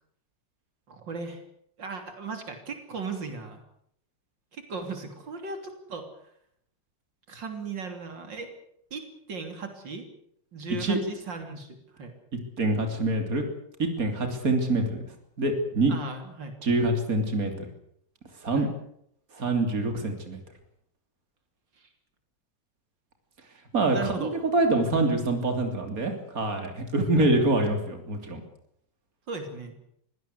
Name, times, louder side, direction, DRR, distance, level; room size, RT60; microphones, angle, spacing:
voice 1, 0.9-1.4 1.8-3.6 4.5-6.3 7.3-8.5 8.9-10.1 10.5-12.1 15.9-16.6 18.5-18.7 21.8-21.9 23.9-24.3 27.0-27.6 29.3-29.7, right 4 dB, 90° right, 6 dB, 3.8 m, -37 dB
voice 2, 12.6-13.5 13.8-15.0 15.4-16.0 16.6-17.7 18.4-18.7 19.3-20.4 23.7-28.4, right 2 dB, 50° right, 5 dB, 3.6 m, -25 dB
23.5 x 17.0 x 8.2 m, 0.70 s
omnidirectional pair, 1.9 m